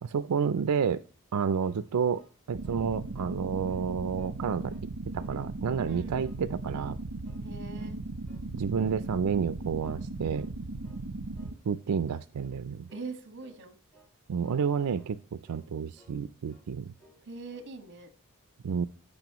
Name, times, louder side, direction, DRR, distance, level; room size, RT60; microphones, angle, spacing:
voice 1, 0.0-1.0 1.3-2.2 2.5-4.7 5.1-7.0 8.5-10.5 11.7-12.9 14.3-16.9 18.6-18.9, right 6 dB, 90° right, 13 dB, 0.4 m, -30 dB
sound 1, 1.6-2.9 3.2-3.4 3.7-4.4 4.7-5.4 5.7-6.5 6.7-7.0 7.2-8.0 8.3-8.5 8.8-9.0 9.3-10.0 10.3-10.6 10.8-11.1 11.3-11.6 11.9-12.1 12.4-12.6 12.9-13.1 13.4-13.6 13.9-14.1 14.4-14.7 14.9-15.2 15.5-16.2 16.5-16.7 17.0-17.2 17.5-17.8, right 1 dB, 5° left, 2.8 m, -60 dB
sound 2, 2.5-11.5, right 2 dB, 70° right, 0.8 m, -38 dB
voice 2, 5.8-6.1 7.4-8.0 12.9-13.8 17.2-18.1, right 3 dB, 55° right, 8 dB, 1.6 m, -42 dB
15.0 x 5.4 x 3.0 m, 0.37 s
head